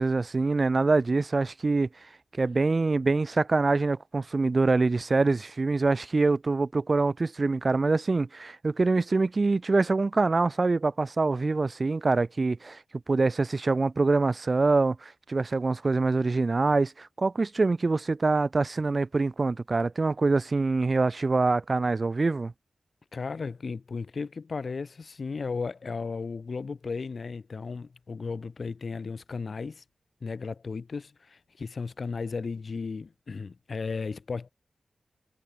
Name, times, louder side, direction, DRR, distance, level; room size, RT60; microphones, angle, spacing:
voice 1, 0.0-1.9 2.4-12.8 13.1-22.5, right 3 dB, 45° right, 2.1 m, -25 dB
voice 2, 23.1-29.8 30.2-34.5, left 4 dB, 65° left, 2.6 m, -35 dB
cardioid pair, 50°, 0 cm